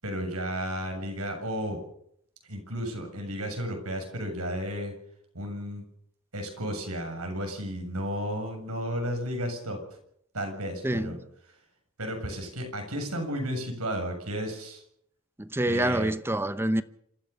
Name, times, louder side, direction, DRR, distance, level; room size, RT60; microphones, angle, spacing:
voice 1, 0.0-1.8 2.5-4.9 5.3-5.8 6.3-9.8 10.3-11.2 12.0-14.8 15.6-16.1, equal, 90° right, 7.2 m, -33 dB
voice 2, 15.4-16.8, right 1 dB, 10° right, 0.8 m, -26 dB
27.5 x 14.0 x 7.0 m
head